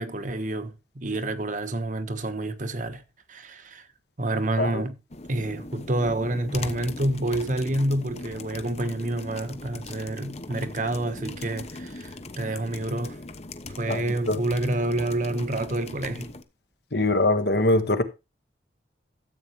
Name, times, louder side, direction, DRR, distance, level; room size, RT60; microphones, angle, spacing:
voice 1, 0.0-3.0 3.3-3.9 4.2-5.0 5.3-13.2 13.8-16.3, right 1 dB, 45° right, 1.2 m, -28 dB
Keyboard Typing, 5.1-16.4, left 2 dB, 35° left, 1.0 m, -40 dB
voice 2, 13.9-14.4 16.9-18.0, left 2 dB, 65° left, 1.5 m, -23 dB
13.5 x 8.4 x 3.1 m
head